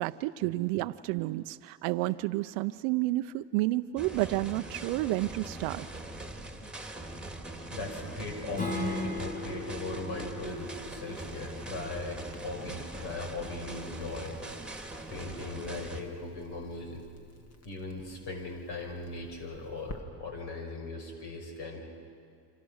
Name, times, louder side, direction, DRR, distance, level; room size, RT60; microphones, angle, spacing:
voice 1, 0.0-5.9, right 18 dB, 85° right, 10 dB, 0.7 m, -30 dB
sound 1, 4.0-16.0, right 2 dB, ahead, 2.3 m, -42 dB
voice 2, 7.7-14.3 15.1-17.0 17.6-21.9, left 2 dB, 60° left, 2 dB, 5.9 m, -39 dB
Strum, 8.5-13.7, left 2 dB, 15° left, 3.5 m, -39 dB
Crackle, 10.4-20.0, left 2 dB, 35° left, 2.0 m, -53 dB
29.5 x 26.0 x 6.4 m, 2.3 s
cardioid pair, 115°, 45 cm